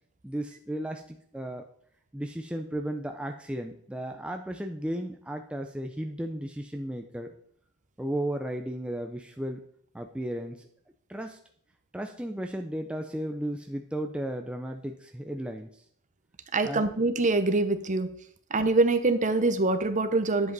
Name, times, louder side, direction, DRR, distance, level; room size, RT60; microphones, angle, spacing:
voice 1, 0.2-1.6 2.1-7.3 8.0-9.6 9.9-10.7 11.1-11.4 11.9-15.8 16.6-16.9, right 1 dB, 5° right, 4 dB, 0.5 m, -34 dB
voice 2, 16.5-18.1 18.5-20.5, right 3 dB, 35° right, 10 dB, 0.8 m, -24 dB
10.5 x 7.5 x 4.0 m, 0.65 s
head